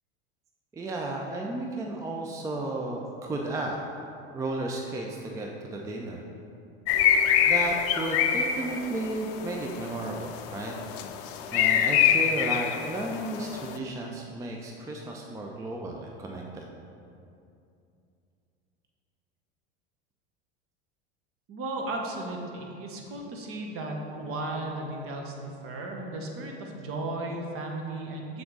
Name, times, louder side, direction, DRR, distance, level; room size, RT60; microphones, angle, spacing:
voice 1, 0.7-3.8 4.3-6.2 7.5-10.7 11.5-16.7, right 2 dB, 10° right, 0 dB, 0.4 m, -33 dB
sound 1, 6.9-13.8, left 9 dB, 50° left, 0.4 m, -26 dB
voice 2, 21.5-28.4, right 2 dB, 45° right, 1 dB, 1.0 m, -35 dB
7.5 x 3.6 x 3.8 m, 2.6 s
hypercardioid pair, 95°, 31 cm